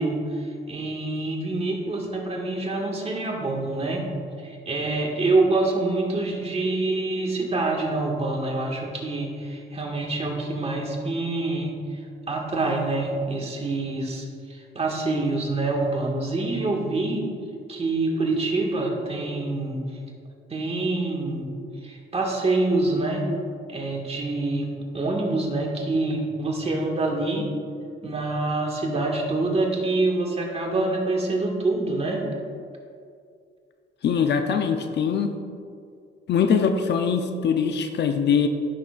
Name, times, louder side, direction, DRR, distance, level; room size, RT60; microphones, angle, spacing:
voice 1, 0.0-4.0 4.4-11.7 12.3-14.3 14.5-17.2 17.7-19.8 20.5-21.5 21.8-23.2 23.7-24.7 24.9-27.5 28.0-32.2, right 2 dB, 30° right, -1 dB, 1.9 m, -26 dB
voice 2, 34.0-35.3 36.3-38.5, left 6 dB, 60° left, 7 dB, 0.7 m, -22 dB
15.0 x 6.3 x 2.5 m, 2.3 s
cardioid pair, 90°, 20 cm